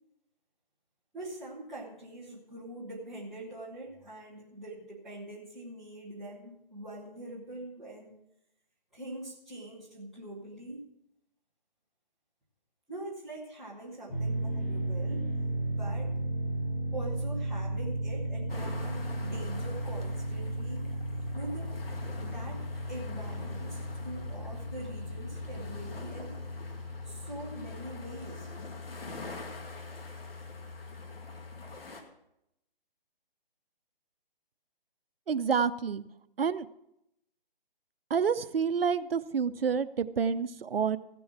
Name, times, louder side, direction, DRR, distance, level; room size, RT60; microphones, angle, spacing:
voice 1, 1.1-8.2 8.9-10.8 12.9-15.3 15.6-16.1 16.9-20.9 21.3-21.7 22.2-26.4 27.0-28.5, right 1 dB, ahead, -12 dB, 0.5 m, -43 dB
sound 1, 14.1-31.8, right 1 dB, 15° left, 4.5 m, -36 dB
sound 2, 18.5-32.0, left 2 dB, 75° left, 2.3 m, -47 dB
voice 2, 35.3-36.0 36.4-36.7 38.1-41.0, right 6 dB, 75° right, 15 dB, 0.7 m, -28 dB
15.5 x 7.0 x 6.1 m, 0.81 s
hypercardioid pair, 155°, 29 cm